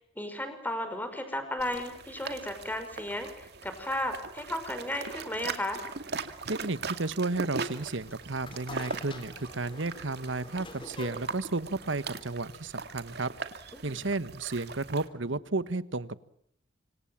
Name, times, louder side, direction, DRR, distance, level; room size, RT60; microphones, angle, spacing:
voice 1, 0.2-5.8 13.8-14.0, left 1 dB, 10° left, 8 dB, 5.7 m, -34 dB
sound 1, 1.6-15.1, right 4 dB, 60° right, 2.4 m, -40 dB
voice 2, 6.4-13.3 13.8-16.2, right 3 dB, 80° right, 15 dB, 1.3 m, -33 dB
sound 2, 8.0-13.2, left 2 dB, 25° left, 3.6 m, -47 dB
26.5 x 26.0 x 7.3 m, 0.71 s
head